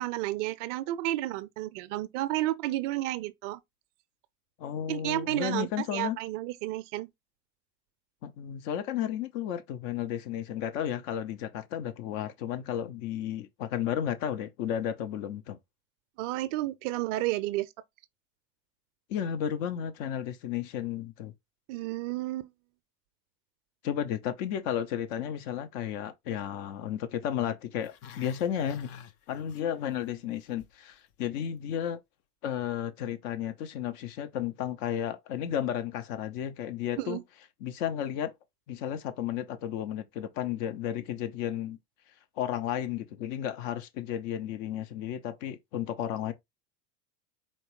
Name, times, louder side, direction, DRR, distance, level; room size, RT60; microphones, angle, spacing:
voice 1, 0.0-3.6 4.9-7.1 16.2-17.7 21.7-22.5 37.0-37.2, right 16 dB, 50° right, 0.5 m, -31 dB
voice 2, 4.6-6.2 8.2-15.6 19.1-21.3 23.8-28.9 29.3-32.0 32.4-37.2 37.6-38.3 38.7-41.8 42.4-46.3, left 10 dB, 50° left, 0.8 m, -33 dB
Growling, 27.8-30.1 30.3-30.7 31.1-31.2, left 9 dB, 35° left, 0.4 m, -49 dB
4.4 x 3.2 x 3.0 m
hypercardioid pair, 80°, 49 cm